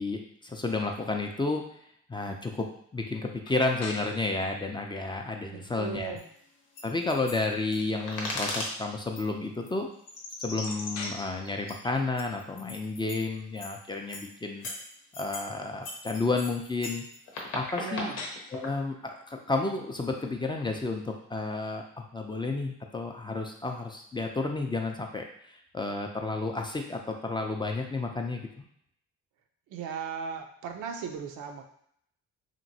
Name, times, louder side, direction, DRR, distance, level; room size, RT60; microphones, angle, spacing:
voice 1, 0.0-1.8 2.1-6.1 6.8-9.9 10.4-14.7 15.2-17.0 17.5-18.1 18.5-28.6, left 3 dB, 15° left, 2 dB, 0.3 m, -31 dB
sound 1, 3.4-23.2, left 3 dB, 60° left, 0.6 m, -50 dB
voice 2, 5.5-6.3 17.8-18.2 29.7-31.6, right 6 dB, 80° right, 4 dB, 0.5 m, -37 dB
sound 2, 6.2-6.3 6.8-8.7 9.2-9.3 9.7-9.8 10.1-13.2 13.6-13.8 14.1-14.3 14.6-15.5 15.8-18.7, left 2 dB, 90° left, 0.8 m, -38 dB
2.9 x 2.6 x 2.7 m, 0.68 s
cardioid pair, 90°, 30 cm